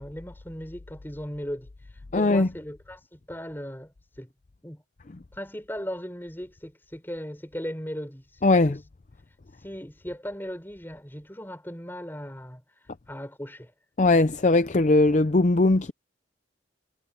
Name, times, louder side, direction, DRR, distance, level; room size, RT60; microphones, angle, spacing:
voice 1, 0.0-1.7 2.1-4.3 4.6-4.8 5.3-8.8 9.6-12.6 13.1-13.7, equal, 10° left, 5.0 m, -37 dB
voice 2, 2.1-2.5 8.4-8.8 14.0-15.9, left 2 dB, 40° left, 0.5 m, -20 dB
head